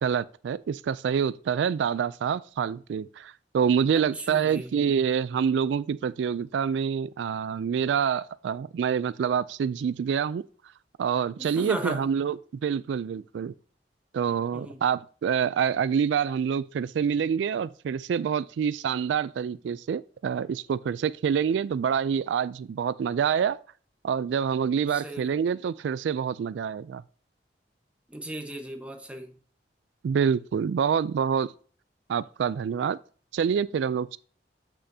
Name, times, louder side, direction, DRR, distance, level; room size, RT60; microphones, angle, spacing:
voice 1, 0.0-10.4 11.0-13.5 14.1-23.6 24.0-27.0 30.0-31.5 32.1-33.0 33.3-34.2, right 7 dB, 90° right, 0.3 m, -26 dB
voice 2, 3.9-4.7 11.4-12.0 14.5-14.8 24.9-25.4 28.1-29.3, right 1 dB, 5° right, 1.0 m, -36 dB
8.2 x 6.3 x 2.7 m
head